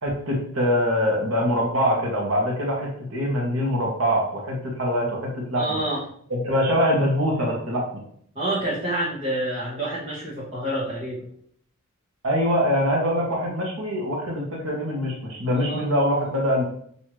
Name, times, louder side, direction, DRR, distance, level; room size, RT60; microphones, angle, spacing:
voice 1, 0.0-5.8 6.3-7.8 12.2-16.6, equal, 70° right, -2 dB, 1.2 m, -23 dB
voice 2, 5.5-6.0 8.3-11.2 15.5-15.9, right 1 dB, 25° right, -9 dB, 1.1 m, -28 dB
6.3 x 2.7 x 3.1 m, 0.63 s
head